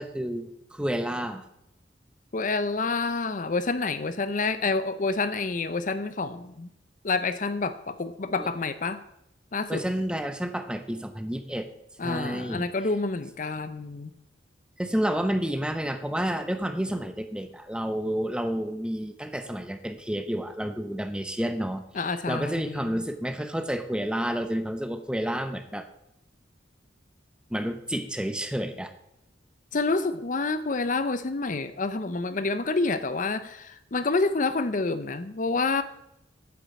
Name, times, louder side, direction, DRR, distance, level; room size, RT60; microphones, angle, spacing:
voice 1, 0.0-1.4 8.4-8.5 9.7-11.7 12.0-12.6 14.8-21.8 22.3-25.9 27.5-28.9, equal, 5° right, 8 dB, 0.8 m, -30 dB
voice 2, 2.3-6.7 7.0-9.0 9.5-9.8 12.0-14.1 21.9-22.9 29.7-35.8, left 3 dB, 45° left, 12 dB, 0.6 m, -28 dB
9.5 x 7.2 x 8.3 m, 0.81 s
head